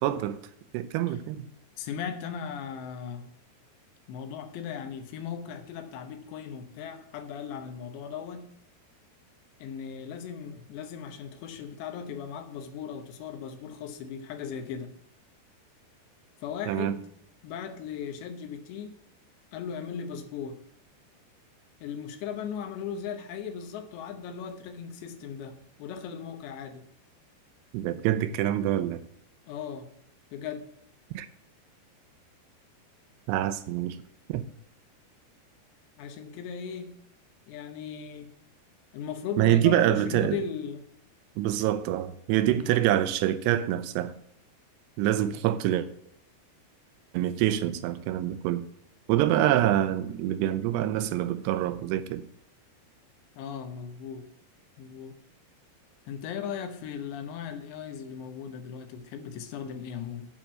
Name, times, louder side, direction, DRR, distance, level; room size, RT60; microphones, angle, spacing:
voice 1, 0.0-0.4 0.7-1.5 16.7-17.0 27.7-29.0 31.1-31.3 33.3-34.0 34.3-34.5 39.4-40.4 41.4-44.1 45.0-45.9 47.1-48.7 49.1-52.2, right 12 dB, 85° right, 2.7 m, -26 dB
voice 2, 1.8-3.3 4.1-8.5 9.6-14.9 16.4-17.1 17.4-19.0 19.5-20.6 21.8-26.8 29.5-29.9 30.3-30.6 36.0-37.0 37.5-38.3 38.9-40.9 42.6-42.9 53.4-54.3 54.8-55.1 56.1-60.3, left 7 dB, 85° left, 3.2 m, -37 dB
9.6 x 4.4 x 7.4 m
omnidirectional pair, 4.9 m